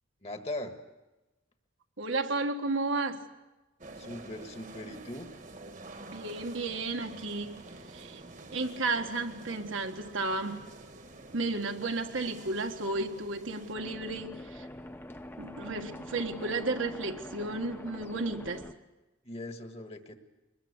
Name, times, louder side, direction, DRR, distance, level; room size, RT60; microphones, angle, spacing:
voice 1, 0.2-0.8 3.9-5.3 19.2-20.2, left 1 dB, 30° left, 7 dB, 1.6 m, -40 dB
voice 2, 2.0-3.2 6.0-7.5 7.9-8.2 8.5-10.6 11.3-14.7 15.4-18.6, right 3 dB, 75° right, 4 dB, 1.7 m, -33 dB
sound 1, 3.8-13.7, right 2 dB, 40° right, 1.4 m, -48 dB
sound 2, 13.7-18.7, left 1 dB, 10° left, 0.8 m, -45 dB
23.0 x 20.5 x 8.4 m, 1.1 s
head